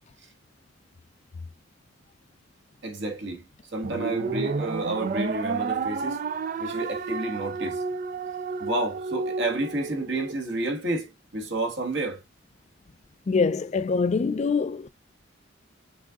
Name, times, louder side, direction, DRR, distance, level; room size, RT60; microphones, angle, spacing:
voice 1, 2.8-3.4 3.7-6.2 6.6-7.8 8.6-12.2, right 2 dB, 65° right, 1.6 m, -30 dB
sound 1, 3.8-10.4, right 4 dB, 45° right, 0.4 m, -31 dB
voice 2, 13.3-14.9, left 4 dB, 35° left, 0.4 m, -24 dB
5.9 x 3.7 x 2.4 m
head